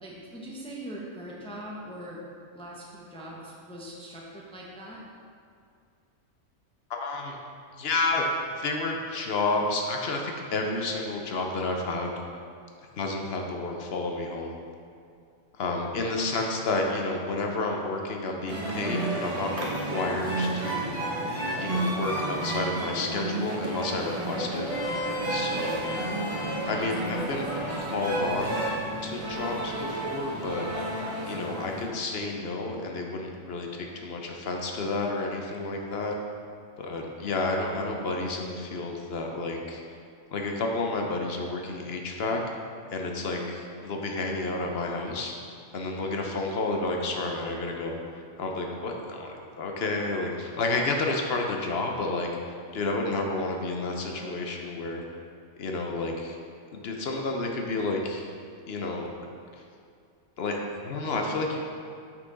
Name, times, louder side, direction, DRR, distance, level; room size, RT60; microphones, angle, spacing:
voice 1, 0.0-2.2 2.5-5.0, right 1 dB, 5° left, -4 dB, 0.6 m, -41 dB
voice 2, 6.9-7.4 7.8-12.2 13.0-14.6 15.6-21.0 21.6-24.7 25.3-25.9 26.7-27.5 27.9-28.6 29.0-30.7 31.2-36.1 36.8-39.8 40.3-42.4 42.9-45.3 45.7-55.0 55.6-56.4 56.7-58.3 58.7-59.1 60.4-61.6, left 2 dB, 55° left, 1 dB, 0.8 m, -30 dB
sound 1, 18.5-31.8, right 1 dB, 30° right, 0.9 m, -31 dB
Vehicle horn car horn honking, 24.5-30.9, equal, 80° left, 1.2 m, -38 dB
5.9 x 5.8 x 3.9 m, 2.3 s
omnidirectional pair, 1.4 m